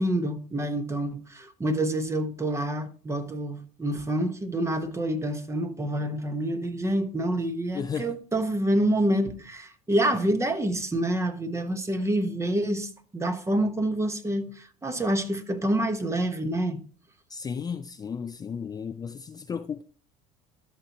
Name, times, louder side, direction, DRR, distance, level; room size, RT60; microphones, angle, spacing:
voice 1, 0.0-16.8, right 1 dB, 15° right, 1.2 m, -27 dB
voice 2, 7.7-8.1 17.3-19.8, left 6 dB, 20° left, 0.4 m, -34 dB
13.0 x 5.8 x 3.0 m
supercardioid pair, 95°, 18 cm